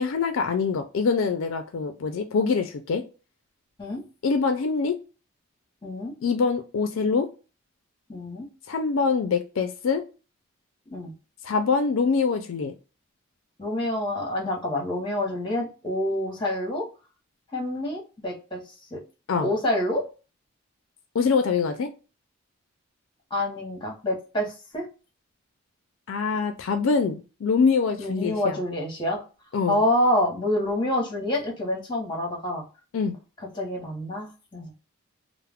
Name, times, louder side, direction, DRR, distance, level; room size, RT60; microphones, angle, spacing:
voice 1, 0.0-3.0 4.2-5.0 6.2-7.3 8.7-10.0 11.4-12.7 19.3-19.5 21.1-21.9 26.1-28.6 29.5-29.8 32.9-33.2, left 5 dB, 65° left, 7 dB, 0.4 m, -24 dB
voice 2, 5.8-6.1 8.1-8.5 10.9-11.1 13.6-16.9 17.5-18.6 18.9-19.0 19.4-20.0 23.3-24.9 28.0-29.2 29.7-32.6 33.5-34.7, left 1 dB, 20° left, 0 dB, 0.9 m, -27 dB
2.3 x 2.0 x 3.3 m, 0.33 s
head